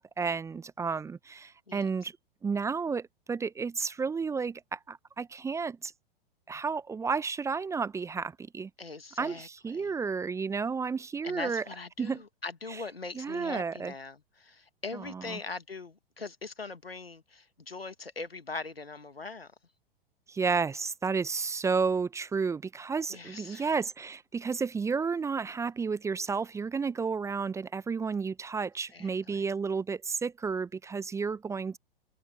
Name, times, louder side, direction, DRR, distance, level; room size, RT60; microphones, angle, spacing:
voice 1, 0.0-2.1 2.4-5.9 6.5-8.7 9.2-11.6 12.0-12.2 13.1-13.9 14.9-15.4 20.3-31.8, right 5 dB, 10° right, 0.9 m, -32 dB
voice 2, 8.8-9.9 11.2-19.5 23.1-23.7 28.9-29.5, left 3 dB, 80° left, 1.9 m, -41 dB
figure-of-eight pair, 100°, 29 cm